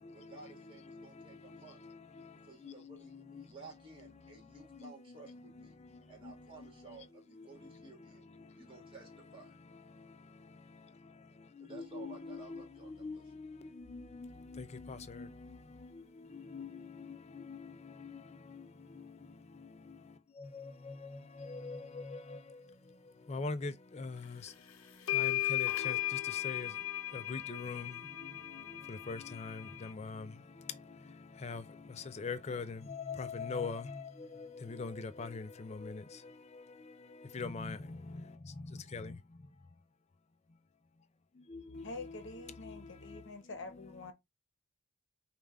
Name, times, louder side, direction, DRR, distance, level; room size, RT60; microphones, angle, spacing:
voice 1, 0.1-1.8 2.4-5.8 6.1-8.3 8.5-9.5 11.6-13.3, right 4 dB, 25° right, 1.7 m, -55 dB
voice 2, 11.7-12.6 13.0-13.2 13.9-14.3 14.6-15.3 16.5-16.7 17.5-17.6 20.5-20.6 21.4-22.2 23.3-23.7 24.0-24.2 25.2-25.9 26.4-26.7 27.3-27.9 29.1-29.6 30.0-30.2 31.4-31.6 32.2-33.8 34.8-35.4 35.8-35.9 37.3-37.8 38.9-39.1 41.5-42.2, left 4 dB, 30° left, 0.4 m, -40 dB
sound 1, 24.5-24.6 25.1-29.9, left 14 dB, 80° left, 0.7 m, -36 dB
voice 3, 41.8-44.1, left 3 dB, 55° left, 0.9 m, -46 dB
5.3 x 2.4 x 3.4 m
head